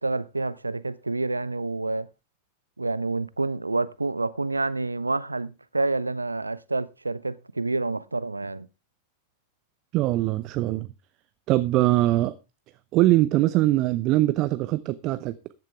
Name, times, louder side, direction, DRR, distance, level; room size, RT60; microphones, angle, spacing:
voice 1, 0.0-2.1 2.8-8.7, right 3 dB, 80° right, 0.6 m, -28 dB
voice 2, 9.9-10.9 11.5-12.3 12.9-15.3, right 16 dB, 40° right, 0.7 m, -22 dB
14.0 x 10.5 x 3.5 m
figure-of-eight pair, 90°, 0 cm